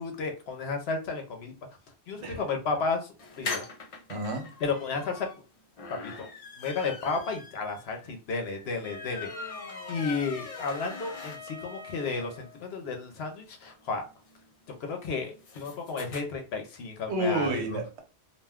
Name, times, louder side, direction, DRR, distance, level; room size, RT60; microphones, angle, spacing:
voice 1, 0.0-1.5 2.1-3.6 4.6-5.3 6.0-6.3 6.6-9.6 9.9-14.0 14.8-17.6, left 4 dB, 75° left, 0.9 m, -33 dB
sound 1, 3.2-11.8 12.2-12.3 12.5-12.6 12.8-16.2, left 4 dB, 50° left, 0.4 m, -42 dB
voice 2, 4.1-4.5 17.1-18.0, right 1 dB, 90° right, 1.0 m, -30 dB
Wind instrument woodwind instrument, 8.8-12.7, left 3 dB, ahead, 0.6 m, -45 dB
2.4 x 2.2 x 3.4 m
omnidirectional pair, 1.1 m